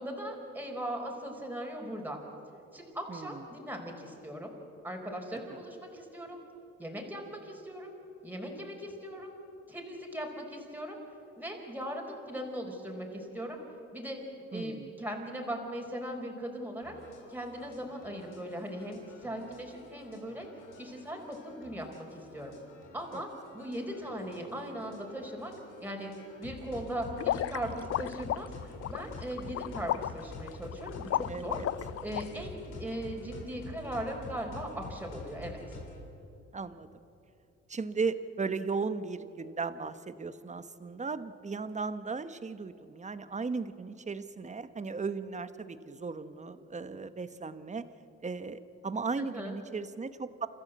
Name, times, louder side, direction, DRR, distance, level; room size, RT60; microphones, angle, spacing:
voice 1, 0.0-2.2 2.7-4.5 4.8-6.4 6.8-7.9 8.2-9.3 9.7-11.0 11.4-13.6 13.9-14.2 14.5-16.9 17.3-20.5 20.8-22.5 22.9-23.3 23.5-25.5 25.8-26.1 26.4-28.5 28.9-31.6 32.0-35.8 49.2-49.6, right 1 dB, 5° right, 1 dB, 4.6 m, -39 dB
voice 2, 3.1-3.4 5.5-5.6 14.5-14.9 23.1-23.2 31.3-31.7 36.5-36.9 37.7-47.8 48.2-50.5, right 4 dB, 25° right, 12 dB, 1.0 m, -36 dB
sound 1, 16.8-36.0, left 3 dB, 85° left, 4.0 m, -48 dB
sound 2, 27.2-32.2, left 12 dB, 50° left, 0.5 m, -34 dB
29.5 x 14.0 x 8.1 m, 2.8 s
cardioid pair, 90°, 30 cm